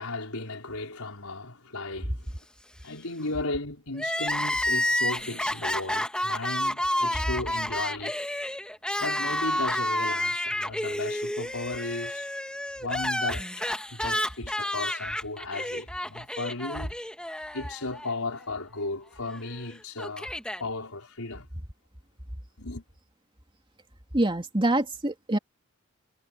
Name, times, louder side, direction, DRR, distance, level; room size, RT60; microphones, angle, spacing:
voice 1, 0.0-2.4 2.8-8.2 9.0-12.3 12.8-17.0 17.5-20.3 20.6-21.5 22.6-22.8, left 2 dB, 75° left, 5.1 m, -35 dB
Crying sobbing, 3.9-18.1 18.4-18.5 19.5-20.6, left 1 dB, 5° left, 1.8 m, -30 dB
voice 2, 24.1-25.4, right 1 dB, 25° right, 2.7 m, -25 dB
head